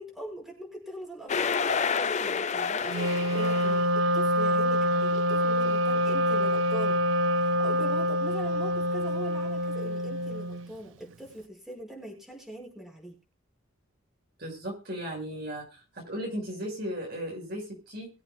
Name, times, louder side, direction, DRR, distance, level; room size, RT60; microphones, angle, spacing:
voice 1, 0.0-7.0 7.3-13.2, right 1 dB, ahead, -1 dB, 5.4 m, -42 dB
sound 1, 1.3-3.9, left 5 dB, 35° left, 0.5 m, -29 dB
Wind instrument woodwind instrument, 2.9-10.7, equal, 70° right, 0.4 m, -26 dB
voice 2, 14.4-15.6 15.9-18.2, equal, 50° right, 0 dB, 5.9 m, -36 dB
23.0 x 8.1 x 2.2 m, 0.34 s
head